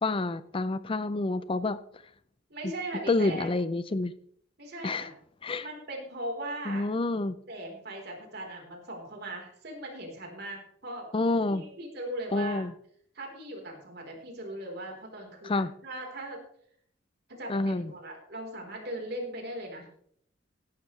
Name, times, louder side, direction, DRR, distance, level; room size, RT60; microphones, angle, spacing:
voice 1, 0.0-1.8 3.1-4.1 4.8-5.1 5.4-5.7 6.7-7.3 11.1-11.6 12.3-12.7 15.4-15.7 17.5-17.9, left 2 dB, 30° left, 15 dB, 0.5 m, -28 dB
voice 2, 2.5-3.5 4.6-5.1 5.6-6.8 7.5-11.1 11.5-12.6 13.1-16.4 17.3-19.9, right 1 dB, 60° right, 1 dB, 3.9 m, -39 dB
16.0 x 11.5 x 3.2 m, 0.64 s
head